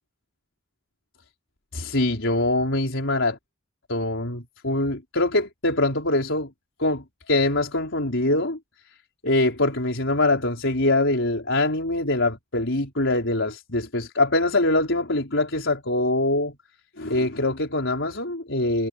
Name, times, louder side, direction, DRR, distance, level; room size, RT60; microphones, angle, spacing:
voice 1, 1.7-3.4 3.9-6.5 6.8-8.6 9.2-16.6 17.0-18.9, left 2 dB, 85° left, 4.3 m, -23 dB
head